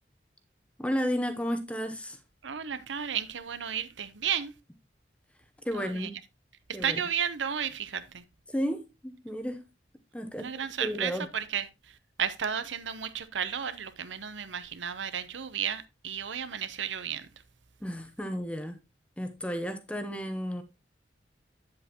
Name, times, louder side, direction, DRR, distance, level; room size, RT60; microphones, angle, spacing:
voice 1, 0.8-2.2 5.6-6.1 6.7-7.0 8.5-9.7 10.1-10.5 10.8-11.3 17.8-18.8 19.2-20.6, equal, 5° left, 0.7 m, -32 dB
voice 2, 2.4-4.5 5.7-6.1 6.8-8.2 10.4-11.6 12.2-17.3, right 8 dB, 85° right, 0.8 m, -33 dB
8.8 x 7.7 x 2.9 m
head